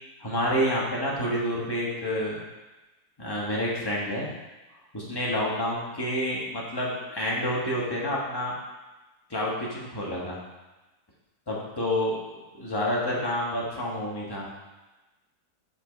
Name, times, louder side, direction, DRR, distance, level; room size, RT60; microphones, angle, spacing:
voice 1, 0.2-2.4 3.2-4.3 4.9-8.5 9.3-10.4 11.5-12.2 12.5-14.5, equal, 15° left, -5 dB, 1.4 m, -28 dB
5.6 x 4.7 x 5.2 m, 1.1 s
omnidirectional pair, 1.7 m